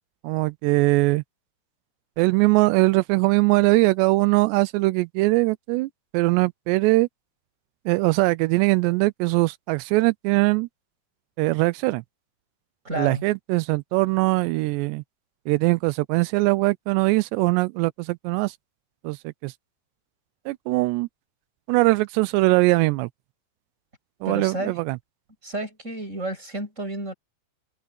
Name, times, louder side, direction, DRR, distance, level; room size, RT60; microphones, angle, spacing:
voice 1, 0.2-1.2 2.2-7.1 7.9-10.7 11.4-12.0 13.0-15.0 15.5-18.5 19.0-19.5 20.5-21.1 21.7-23.1 24.2-25.0, right 22 dB, 80° right, 2.6 m, -21 dB
voice 2, 12.8-13.2 24.2-24.8 25.4-27.1, right 1 dB, 15° right, 8.0 m, -31 dB
omnidirectional pair, 5.4 m